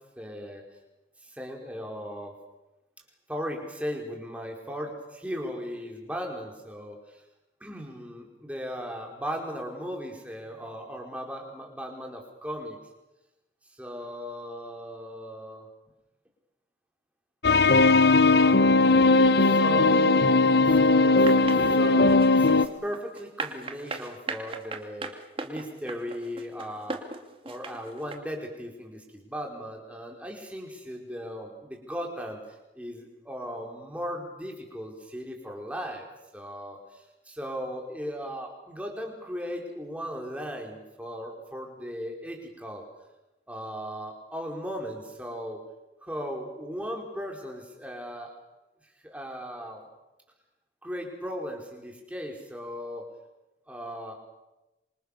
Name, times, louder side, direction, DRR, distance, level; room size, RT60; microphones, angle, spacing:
voice 1, 0.2-0.6 1.2-2.3 3.3-7.2 7.6-12.8 13.8-15.7 19.4-20.2 20.6-21.3 21.6-25.1 25.4-27.0 27.4-36.1 36.3-42.8 43.5-45.6 46.0-48.3 49.0-49.8 50.8-53.1 53.7-54.1, equal, 10° right, 1 dB, 5.0 m, -37 dB
sound 1, 17.4-22.7, left 3 dB, 70° left, 1.1 m, -19 dB
sound 2, 21.2-28.2, right 3 dB, 30° right, 2.6 m, -37 dB
27.0 x 26.5 x 6.9 m, 0.98 s
head